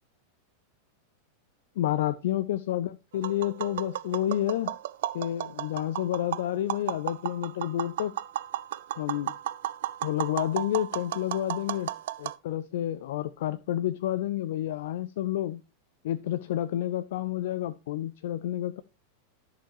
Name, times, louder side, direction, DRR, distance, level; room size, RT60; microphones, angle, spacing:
voice 1, 1.8-4.8 5.1-8.2 9.0-9.3 10.0-11.9 12.2-15.6 16.0-18.8, left 12 dB, 55° left, 0.4 m, -30 dB
Tap, 3.1-12.4, right 13 dB, 55° right, 0.4 m, -34 dB
11.0 x 6.6 x 3.1 m
figure-of-eight pair, 90°, 0 cm